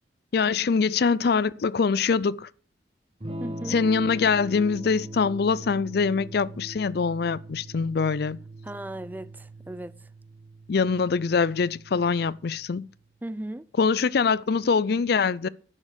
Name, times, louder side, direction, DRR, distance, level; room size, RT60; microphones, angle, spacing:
voice 1, 0.3-2.5 3.7-8.4 10.7-12.9 13.8-15.5, left 5 dB, 60° left, 0.4 m, -24 dB
Electric guitar / Strum, 3.2-13.0, right 1 dB, 30° right, 1.5 m, -41 dB
voice 2, 3.4-3.8 8.6-10.1 13.2-13.7, right 1 dB, 10° right, 0.4 m, -37 dB
11.0 x 7.3 x 6.6 m
head